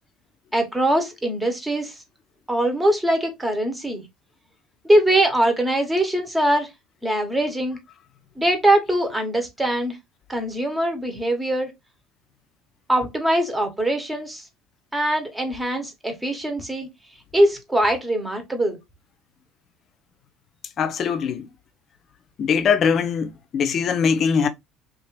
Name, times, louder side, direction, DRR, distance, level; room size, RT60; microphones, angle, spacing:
voice 1, 0.5-2.0 2.5-4.0 4.8-6.7 7.0-7.8 8.4-10.0 10.3-11.7 12.9-14.4 14.9-16.9 17.3-18.8, right 1 dB, 10° right, 1.1 m, -22 dB
voice 2, 20.8-21.5 22.4-24.5, left 6 dB, 45° left, 0.6 m, -21 dB
2.9 x 2.5 x 3.1 m
hypercardioid pair, 65°, 0 cm